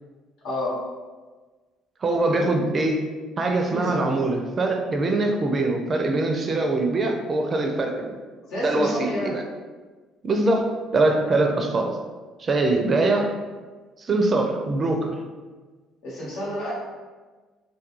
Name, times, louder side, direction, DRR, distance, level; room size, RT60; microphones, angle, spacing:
voice 1, 0.4-0.8 3.7-4.1 8.5-9.4 16.0-16.7, left 1 dB, 80° left, -7 dB, 1.1 m, -29 dB
voice 2, 2.0-3.0 3.4-8.2 8.6-9.4 10.2-11.9 12.4-13.3 14.0-15.1, right 2 dB, 40° right, 3 dB, 0.4 m, -23 dB
2.3 x 2.2 x 3.0 m, 1.4 s
supercardioid pair, 85°, 0 cm